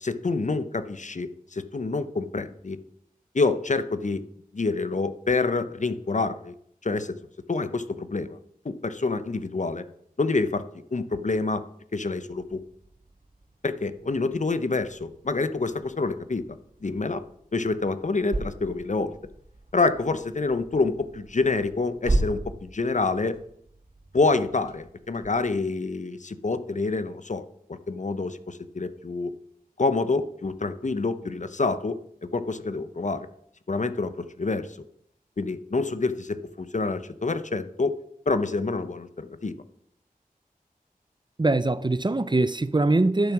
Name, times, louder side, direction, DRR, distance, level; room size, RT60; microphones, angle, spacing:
voice 1, 0.0-2.8 3.3-4.3 4.5-6.5 6.8-7.2 7.5-8.4 8.6-9.8 10.2-10.6 10.9-11.6 11.9-12.6 13.6-16.4 16.8-17.2 17.5-19.1 19.7-23.4 24.1-29.3 29.8-32.0 32.3-33.3 33.7-34.8 35.4-38.0 38.3-39.5, left 3 dB, 55° left, 0.7 m, -27 dB
sound 1, 12.3-25.5, right 2 dB, 55° right, 2.9 m, -37 dB
voice 2, 41.4-43.3, right 2 dB, 30° right, 0.5 m, -22 dB
11.0 x 7.1 x 6.1 m
wide cardioid pair, 65°, 15 cm